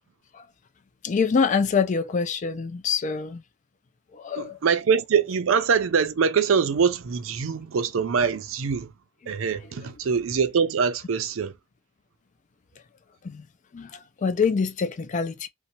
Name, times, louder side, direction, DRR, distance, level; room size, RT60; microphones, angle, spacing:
voice 1, 1.0-3.4 4.1-4.6 9.6-9.7 13.2-13.5 13.7-15.5, left 5 dB, 40° left, 0.4 m, -25 dB
voice 2, 4.4-8.9 9.3-11.5, right 6 dB, 90° right, 0.5 m, -23 dB
2.7 x 2.1 x 2.8 m
head